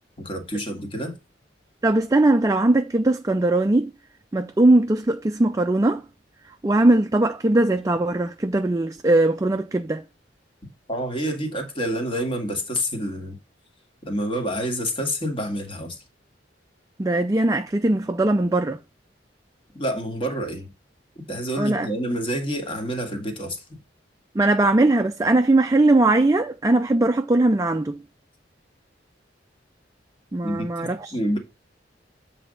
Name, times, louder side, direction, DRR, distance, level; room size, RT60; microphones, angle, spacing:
voice 1, 0.2-1.1 10.9-13.4 14.1-16.0 19.7-20.7 21.3-23.6 30.4-31.4, equal, 30° left, 1.9 m, -28 dB
voice 2, 1.8-3.9 4.3-6.0 6.6-10.0 17.0-18.8 21.6-21.9 24.3-28.0 30.3-31.2, right 2 dB, 20° right, 0.4 m, -20 dB
7.8 x 3.5 x 5.2 m
head